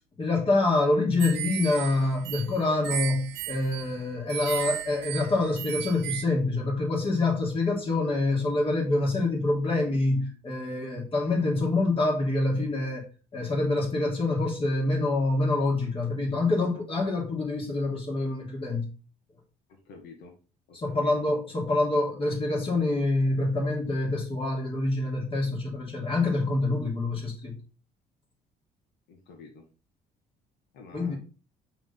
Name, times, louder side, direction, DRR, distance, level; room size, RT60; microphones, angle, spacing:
voice 1, 0.2-13.1 13.3-18.9 20.7-27.6 30.9-31.2, left 2 dB, 35° left, 3.0 m, -26 dB
sound 1, 1.2-6.2, right 16 dB, 80° right, 0.4 m, -35 dB
voice 2, 19.7-20.3 20.7-21.1 29.1-29.6 30.7-31.2, left 4 dB, 85° left, 1.6 m, -48 dB
6.0 x 3.8 x 5.4 m
cardioid pair, 110°, 17 cm